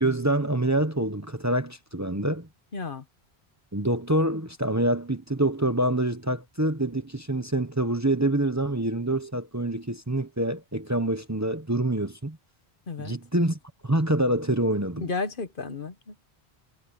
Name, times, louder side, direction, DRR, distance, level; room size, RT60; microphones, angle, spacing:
voice 1, 0.0-2.5 3.7-12.4 13.0-15.1, right 1 dB, 15° right, 0.9 m, -26 dB
voice 2, 2.7-3.0 12.9-13.2 15.0-16.4, left 4 dB, 55° left, 1.3 m, -33 dB
omnidirectional pair, 1.1 m